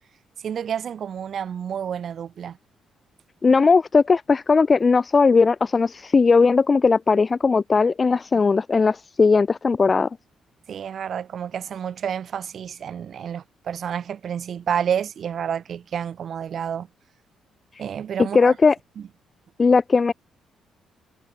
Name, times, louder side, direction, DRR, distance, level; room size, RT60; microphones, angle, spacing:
voice 1, 0.4-2.6 10.7-16.9 17.8-18.6, right 8 dB, 60° right, 1.9 m, -29 dB
voice 2, 3.4-10.1 17.7-17.8 18.3-18.8 19.6-20.1, left 4 dB, 30° left, 2.0 m, -18 dB
cardioid pair, 90°, 0 cm